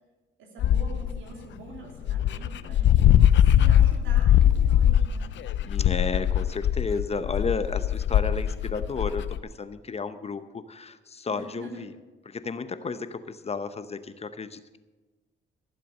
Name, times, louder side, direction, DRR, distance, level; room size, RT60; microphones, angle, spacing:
voice 1, 0.4-5.3 11.3-11.9, right 3 dB, 80° right, 0 dB, 3.4 m, -45 dB
Dog, 0.6-1.2 1.8-1.9 2.0-9.4, left 10 dB, 70° left, 0.6 m, -21 dB
voice 2, 2.6-3.2 5.6-11.9 12.3-14.8, left 4 dB, 30° left, 11 dB, 0.8 m, -33 dB
15.5 x 7.4 x 6.6 m, 1.2 s
cardioid pair, 90°, 20 cm